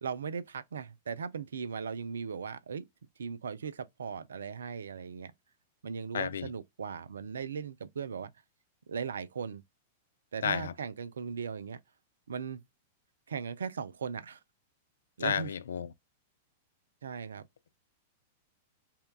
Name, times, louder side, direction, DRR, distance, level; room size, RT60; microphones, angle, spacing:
voice 1, 0.0-2.8 3.2-5.3 5.8-8.3 8.9-9.6 10.3-11.8 12.3-12.6 13.3-14.4 15.2-15.5 17.0-17.4, right 6 dB, 70° right, 0.4 m, -38 dB
voice 2, 6.1-6.5 10.4-10.7 15.2-15.9, left 7 dB, 65° left, 0.3 m, -31 dB
5.6 x 2.2 x 2.2 m
figure-of-eight pair, 95°, 0 cm